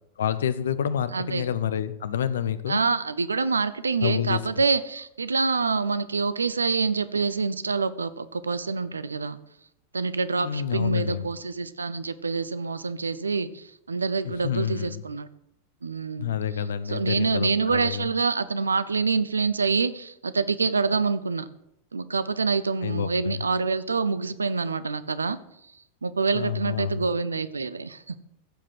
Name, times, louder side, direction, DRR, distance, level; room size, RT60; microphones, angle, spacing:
voice 1, 0.2-2.8 4.0-4.4 10.4-11.3 14.4-15.0 16.2-18.1 22.8-23.4 26.3-27.0, left 9 dB, 65° left, 15 dB, 0.8 m, -28 dB
voice 2, 1.1-1.5 2.7-9.4 9.9-15.3 15.8-16.3 16.9-21.5 21.9-25.4 26.0-28.2, right 4 dB, 75° right, 15 dB, 0.7 m, -26 dB
15.0 x 7.5 x 6.3 m, 0.78 s
figure-of-eight pair, 90°, 0 cm